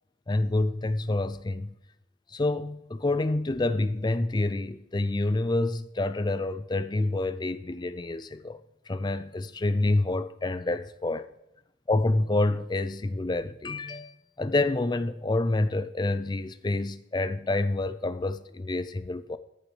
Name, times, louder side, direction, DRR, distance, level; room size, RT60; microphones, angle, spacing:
voice 1, 0.3-1.8 2.3-8.6 8.9-11.3 11.9-19.4, left 2 dB, 20° left, 0.4 m, -28 dB
13.5 x 6.5 x 3.2 m
head